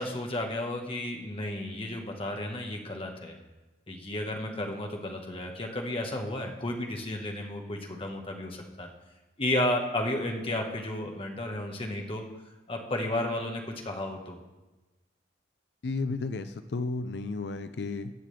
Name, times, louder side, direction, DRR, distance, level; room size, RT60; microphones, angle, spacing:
voice 1, 0.0-3.3 3.9-8.9 9.4-12.2 12.7-14.4, left 1 dB, 30° left, 2 dB, 1.4 m, -33 dB
voice 2, 15.8-18.1, left 3 dB, 65° left, 10 dB, 0.5 m, -33 dB
21.0 x 7.5 x 3.4 m, 1.1 s
head